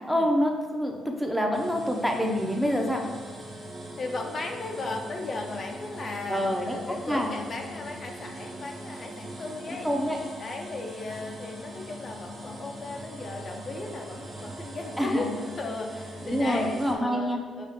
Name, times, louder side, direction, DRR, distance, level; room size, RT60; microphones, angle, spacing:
voice 1, 0.1-3.0 6.3-6.8 7.1-7.3 9.7-10.2 15.0-15.3 16.2-17.4, equal, ahead, 1 dB, 0.6 m, -26 dB
sound 1, 1.5-16.9, equal, 40° right, 1.0 m, -41 dB
voice 2, 4.0-9.9 10.4-15.3 15.6-17.7, left 3 dB, 45° left, 2 dB, 0.4 m, -36 dB
5.2 x 2.4 x 3.6 m, 1.5 s
cardioid pair, 90°, 0 cm